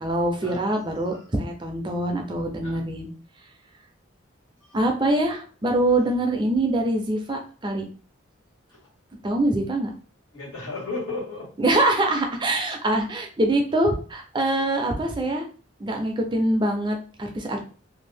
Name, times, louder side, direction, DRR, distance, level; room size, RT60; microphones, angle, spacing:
voice 1, 0.0-3.1 4.7-7.9 9.2-9.9 11.6-15.4 15.8-17.6, right 1 dB, 25° right, 3 dB, 0.4 m, -24 dB
voice 2, 10.3-11.5, left 3 dB, 85° left, -5 dB, 1.7 m, -34 dB
2.6 x 2.4 x 3.3 m, 0.39 s
head